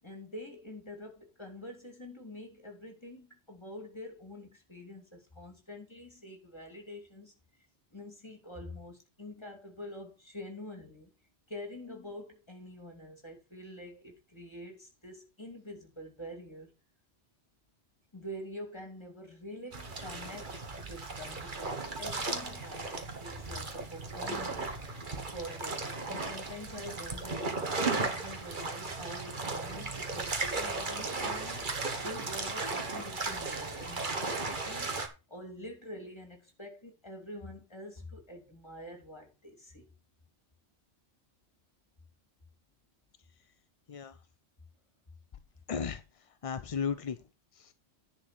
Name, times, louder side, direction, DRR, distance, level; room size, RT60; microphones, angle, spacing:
voice 1, 0.0-7.3 7.9-11.1 11.5-16.7 18.1-25.0 25.3-31.8 32.0-39.9, left 1 dB, 25° left, 2.9 m, -46 dB
sound 1, 19.7-35.1, right 3 dB, 45° right, 1.6 m, -36 dB
voice 2, 43.9-44.2 45.7-47.3 47.5-47.7, left 6 dB, 45° left, 0.5 m, -36 dB
10.5 x 4.5 x 6.2 m
omnidirectional pair, 1.2 m